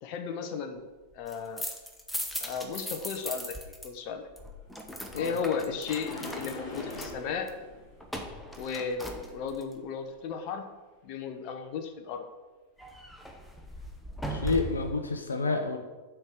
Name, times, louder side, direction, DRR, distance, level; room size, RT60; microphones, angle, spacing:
voice 1, 0.0-0.8 1.1-1.6 2.4-4.2 5.1-7.5 8.6-10.7 11.0-12.2, left 6 dB, 45° left, 6 dB, 0.9 m, -35 dB
sound 1, 1.1-3.9 4.1-9.7 12.8-15.0, equal, 5° left, 1.0 m, -39 dB
sound 2, 4.6-9.8 13.7-13.8 14.4-14.5, left 2 dB, 25° left, 3.0 m, -44 dB
voice 2, 14.3-15.8, left 3 dB, 75° left, 5 dB, 0.8 m, -29 dB
7.5 x 4.6 x 6.7 m, 1.2 s
figure-of-eight pair, 90°, 0 cm